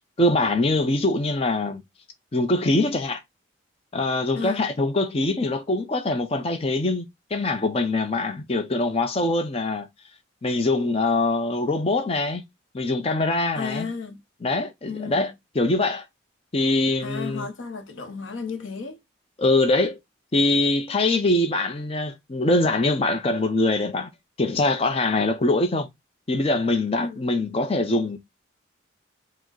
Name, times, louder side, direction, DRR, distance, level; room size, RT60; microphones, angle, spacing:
voice 1, 0.2-1.8 2.3-3.2 3.9-7.1 7.3-9.9 10.4-12.4 12.7-13.9 14.4-16.0 16.5-17.5 19.4-20.0 20.3-24.1 24.4-25.9 26.3-28.2, left 2 dB, 30° left, 0.5 m, -23 dB
voice 2, 4.3-4.7 13.6-14.2 14.8-15.3 17.0-19.0 26.9-27.2, left 5 dB, 70° left, 0.7 m, -33 dB
4.9 x 2.0 x 3.8 m
head